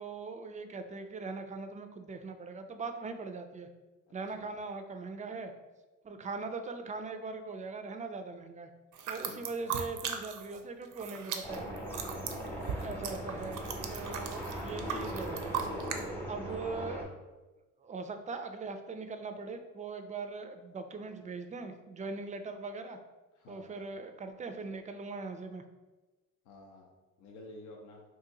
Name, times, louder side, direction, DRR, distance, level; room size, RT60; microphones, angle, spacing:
voice 1, 0.0-3.7 4.1-5.5 6.0-8.7 9.1-11.6 12.7-15.5 16.3-17.0 17.8-23.0 23.5-25.6, right 4 dB, 25° right, 7 dB, 0.3 m, -40 dB
voice 2, 4.1-4.5 9.2-9.5 12.2-12.7 16.1-16.4 23.3-23.8 26.4-26.9 27.2-28.0, left 2 dB, 75° left, 0 dB, 0.6 m, -52 dB
sound 1, 8.9-10.6 10.8-16.0, right 7 dB, 85° right, 0.5 m, -38 dB
sound 2, 11.4-17.0, equal, 5° left, 0.8 m, -39 dB
2.8 x 2.6 x 3.7 m, 1.1 s
cardioid pair, 90°, 30 cm